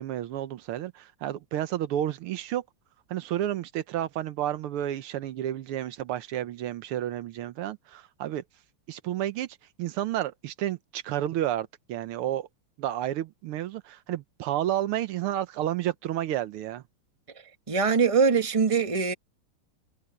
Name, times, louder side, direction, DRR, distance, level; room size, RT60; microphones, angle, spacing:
voice 1, 0.0-2.6 3.1-8.4 8.9-12.5 12.8-16.8, right 12 dB, 85° right, 1.7 m, -31 dB
voice 2, 17.7-19.1, right 5 dB, 15° right, 1.3 m, -22 dB
omnidirectional pair, 2.4 m